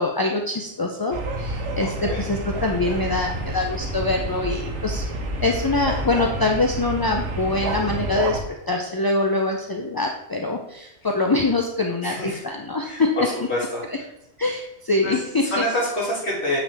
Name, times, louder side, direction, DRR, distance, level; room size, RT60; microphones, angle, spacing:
voice 1, 0.0-5.1 5.4-8.4 8.7-13.1 13.9-14.0 14.4-15.6, left 2 dB, 35° left, 1 dB, 0.4 m, -24 dB
sound 1, 1.1-8.4, right 2 dB, 90° right, 1.3 m, -29 dB
voice 2, 1.8-2.3 12.0-12.4 12.8-13.8 15.0-15.1 15.5-16.6, left 1 dB, 65° left, -5 dB, 2.8 m, -27 dB
8.7 x 4.9 x 3.4 m, 0.87 s
omnidirectional pair, 1.2 m